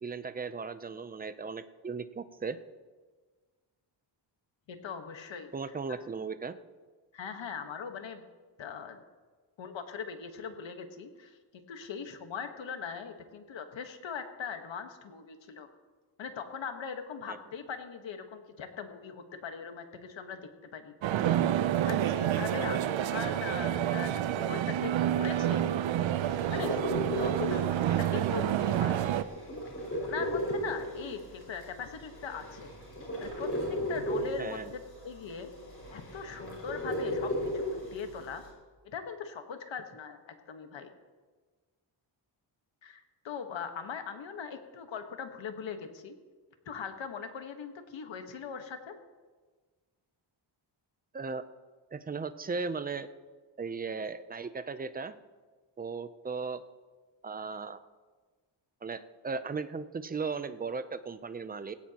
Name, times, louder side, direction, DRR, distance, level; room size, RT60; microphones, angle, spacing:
voice 1, 0.0-2.6 5.5-6.5 17.3-17.4 34.4-34.7 51.1-51.4 51.9-53.1 53.6-55.1 55.8-56.6 57.2-57.8 58.8-61.7, right 4 dB, 20° right, 12 dB, 0.5 m, -37 dB
voice 2, 4.7-5.5 5.9-6.0 7.1-8.2 8.6-9.0 9.6-15.7 16.2-20.4 20.7-20.9 21.4-21.5 21.9-25.8 26.5-29.1 30.0-32.7 33.2-33.5 33.9-35.5 35.9-38.4 38.8-40.9 42.8-46.1 46.7-48.9, left 6 dB, 70° left, 6 dB, 1.4 m, -40 dB
sound 1, 21.0-29.2, right 11 dB, 80° right, 0.7 m, -29 dB
sound 2, 26.2-38.5, equal, 30° left, 5.7 m, -36 dB
18.5 x 17.0 x 2.9 m, 1.4 s
wide cardioid pair, 135°, 46 cm